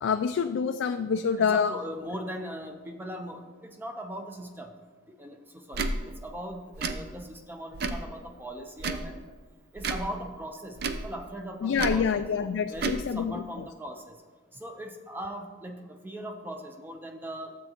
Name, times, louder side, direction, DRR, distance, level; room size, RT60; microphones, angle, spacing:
voice 1, 0.0-1.7 11.6-13.7, left 6 dB, 75° left, 7 dB, 0.3 m, -27 dB
voice 2, 1.4-4.7 5.2-9.1 9.7-12.3 12.7-14.2 14.5-17.5, equal, 10° right, 4 dB, 0.7 m, -39 dB
Tick / Tick-tock, 5.7-5.9 6.7-7.0 7.7-8.1 8.8-9.1 9.8-10.1 10.8-11.1 11.8-12.0 12.7-13.0, right 3 dB, 55° right, 0.5 m, -31 dB
12.5 x 7.7 x 2.9 m, 1.4 s
head